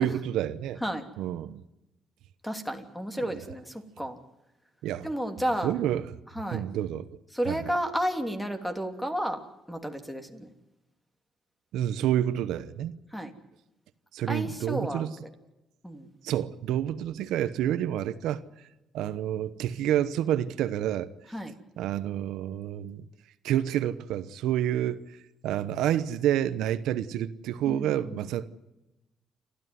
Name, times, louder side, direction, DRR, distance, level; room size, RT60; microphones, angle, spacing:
voice 1, 0.0-0.8 1.2-1.6 4.8-5.1 5.6-6.1 6.5-7.1 7.4-7.7 11.7-12.9 14.1-15.1 16.2-18.4 18.9-21.1 21.8-23.1 23.4-25.0 25.4-28.5, right 11 dB, 90° right, 0.9 m, -28 dB
voice 2, 2.4-4.2 5.0-5.7 6.3-6.6 7.3-9.4 9.7-10.5 13.1-13.3 14.3-15.1 15.8-16.1 21.3-21.5 27.7-28.2, equal, 5° left, 3.0 m, -32 dB
29.5 x 13.5 x 9.5 m
cardioid pair, 90°, 0 cm